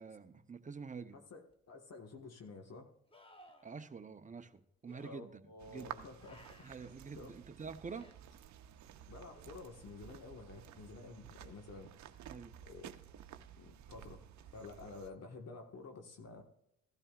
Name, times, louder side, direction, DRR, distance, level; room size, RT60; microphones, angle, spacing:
voice 1, 0.0-1.2 3.6-5.4 5.7-6.1 6.6-8.1 12.3-12.5, right 5 dB, 25° right, 9 dB, 0.8 m, -47 dB
voice 2, 1.1-2.9 5.0-6.6 7.2-7.3 9.1-11.9 12.7-13.0 13.6-14.2 14.5-16.4, left 3 dB, 55° left, 4 dB, 1.6 m, -51 dB
sound 1, 1.5-1.6 3.1-3.8 4.9-5.1 6.2-6.9 7.9-8.2 9.3-10.0 13.2-13.3, left 1 dB, 20° left, 1.0 m, -61 dB
sound 2, 5.6-15.1, right 10 dB, 65° right, 0.8 m, -53 dB
15.5 x 12.0 x 2.5 m, 0.78 s
cardioid pair, 90°, 30 cm